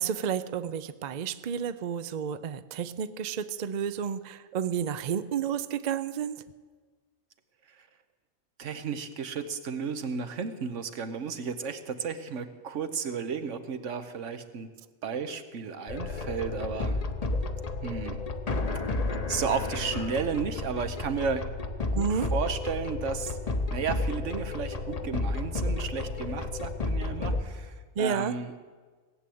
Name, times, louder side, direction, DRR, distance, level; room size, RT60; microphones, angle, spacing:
voice 1, 0.0-6.4 21.9-22.3 28.0-28.3, right 7 dB, 55° right, 13 dB, 0.5 m, -31 dB
voice 2, 8.6-14.7 15.0-17.0 17.8-18.2 19.3-21.5 21.9-23.4 23.7-28.5, right 6 dB, 75° right, 10 dB, 1.3 m, -33 dB
sound 1, 15.9-27.4, left 2 dB, 35° left, 0.9 m, -32 dB
18.0 x 7.7 x 8.5 m, 1.4 s
omnidirectional pair, 1.3 m